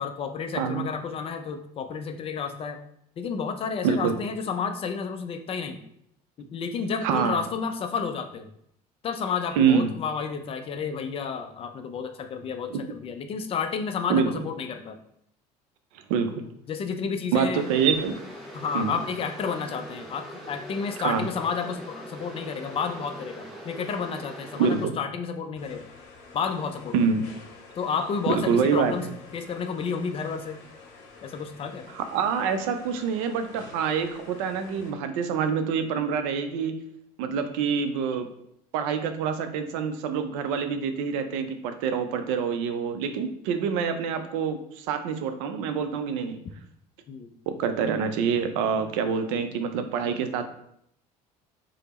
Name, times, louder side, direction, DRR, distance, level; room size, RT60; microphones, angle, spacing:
voice 1, 0.0-2.8 3.2-5.8 6.4-8.5 9.0-15.0 16.7-17.7 18.5-25.9 26.3-27.1 27.8-29.1 29.3-30.6 31.2-31.9 47.1-47.3, left 6 dB, 30° left, 7 dB, 0.4 m, -31 dB
voice 2, 0.6-0.9 3.8-4.2 7.0-7.4 9.6-9.9 12.7-12.8 14.1-14.3 16.1-16.4 17.3-18.3 18.7-18.9 21.0-21.3 24.6-24.9 26.9-27.2 28.3-29.1 31.9-36.8 37.2-38.3 38.7-46.4 47.5-50.5, right 6 dB, 55° right, 8 dB, 0.4 m, -26 dB
sound 1, 17.5-24.9, equal, ahead, 0.9 m, -42 dB
sound 2, 25.6-34.9, left 3 dB, 55° left, 0.8 m, -48 dB
3.3 x 2.0 x 4.1 m, 0.72 s
figure-of-eight pair, 60°, 21 cm